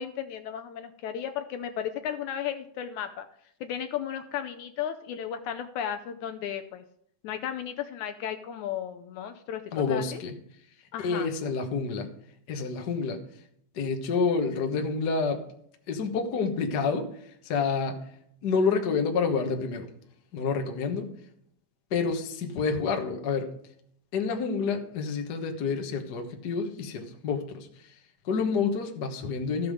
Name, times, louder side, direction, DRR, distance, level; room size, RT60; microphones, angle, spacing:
voice 1, 0.0-3.3 3.6-6.8 7.2-10.2 10.9-11.3, left 9 dB, 75° left, 7 dB, 1.8 m, -34 dB
voice 2, 9.7-10.3 11.0-12.1 12.5-13.2 13.7-15.5 15.9-17.1 17.4-18.0 18.4-19.9 20.3-21.1 21.9-23.5 24.1-27.7 28.2-29.7, left 5 dB, 60° left, 4 dB, 1.0 m, -28 dB
14.0 x 7.1 x 5.0 m, 0.68 s
omnidirectional pair, 3.9 m